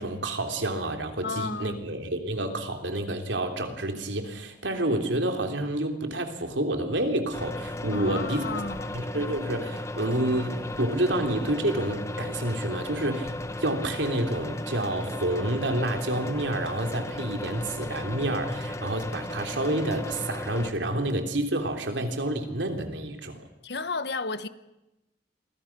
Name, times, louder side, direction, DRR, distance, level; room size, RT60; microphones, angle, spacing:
voice 1, 0.0-8.4 8.9-23.4, right 1 dB, 80° right, 3.4 m, -29 dB
voice 2, 1.2-1.8 7.9-9.0 23.6-24.5, left 4 dB, 60° left, 1.2 m, -33 dB
sound 1, 7.3-20.7, left 1 dB, 15° left, 1.1 m, -35 dB
29.5 x 23.5 x 6.1 m
head